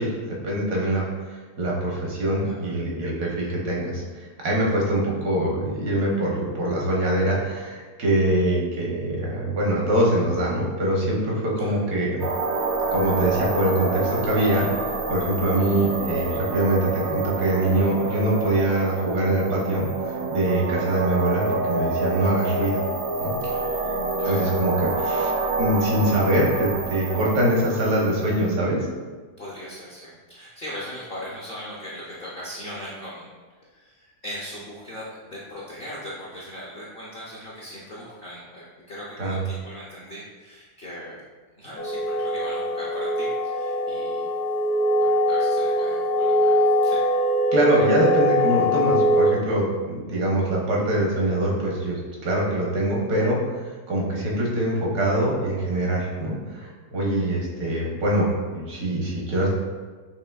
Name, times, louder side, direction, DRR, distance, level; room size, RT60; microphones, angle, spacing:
voice 1, 0.0-4.0 4.4-12.2 12.9-14.7 15.1-22.8 23.2-23.3 24.2-25.3 25.6-28.8 39.2-39.4 47.5-53.4 53.9-59.5, right 1 dB, 80° right, -3 dB, 1.5 m, -23 dB
sound 1, 12.2-28.6, right 3 dB, 60° right, 0.7 m, -27 dB
voice 2, 23.4-23.7 24.2-24.4 29.4-33.3 33.7-41.2 41.6-44.3 45.0-47.0 51.3-51.4, equal, 60° left, -6 dB, 0.6 m, -39 dB
sound 2, 41.8-49.3, equal, 80° left, 1.3 m, -22 dB
5.6 x 2.8 x 2.3 m, 1.4 s
omnidirectional pair, 1.7 m